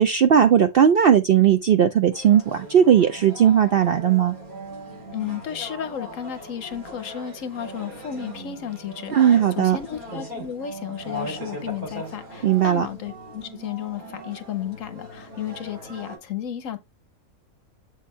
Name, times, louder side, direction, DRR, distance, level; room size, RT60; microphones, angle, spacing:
voice 1, 0.0-4.3 9.2-9.8 12.4-12.9, right 9 dB, 65° right, 0.6 m, -17 dB
sound 1, 2.1-16.2, equal, 90° right, 5.1 m, -39 dB
voice 2, 5.1-16.8, left 9 dB, 65° left, 1.2 m, -33 dB
7.4 x 2.5 x 5.5 m
omnidirectional pair, 1.5 m